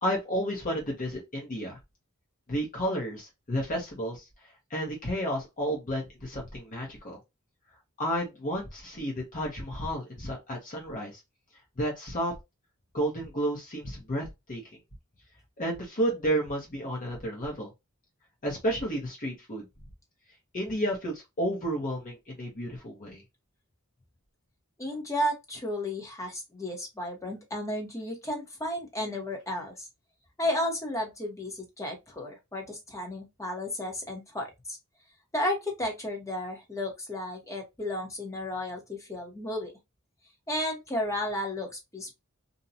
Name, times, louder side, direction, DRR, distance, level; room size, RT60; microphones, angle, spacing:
voice 1, 0.0-1.8 2.5-4.3 4.7-7.2 8.0-11.2 11.8-12.3 12.9-14.6 15.6-17.7 18.4-19.6 20.5-23.2, equal, 40° left, 0.8 m, -31 dB
voice 2, 24.8-29.9 30.4-34.8 35.3-39.7 40.5-42.1, left 1 dB, 15° left, 0.8 m, -33 dB
2.6 x 2.2 x 2.6 m
head